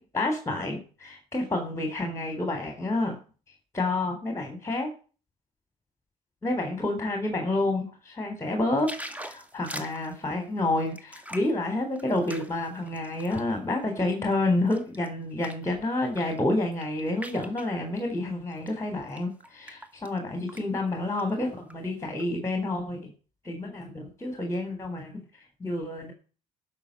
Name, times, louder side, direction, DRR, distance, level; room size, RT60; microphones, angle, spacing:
voice 1, 0.0-3.2 3.7-4.9 6.4-23.1 23.4-26.1, left 2 dB, 15° left, 4 dB, 3.8 m, -29 dB
sound 1, 8.8-13.5 14.0-15.7 16.0-16.4 16.6-17.7 18.5-18.7 19.1-20.2 20.5-20.6 20.9-21.7 22.2-22.3, right 1 dB, 10° right, 1.9 m, -43 dB
11.5 x 6.4 x 8.4 m, 0.37 s
hypercardioid pair, 65°, 18 cm